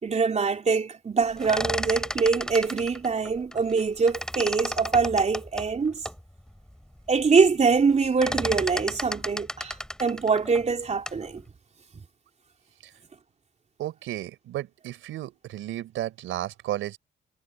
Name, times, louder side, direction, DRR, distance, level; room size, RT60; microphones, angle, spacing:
voice 1, 0.0-6.0 7.1-11.4, right 5 dB, 35° right, 3.9 m, -24 dB
sound 1, 1.3-3.8 4.1-6.2 6.7-6.8 7.1-7.5 7.7-11.3, equal, 5° left, 5.9 m, -33 dB
voice 2, 13.8-17.0, right 13 dB, 85° right, 4.3 m, -33 dB
cardioid pair, 90°, 20 cm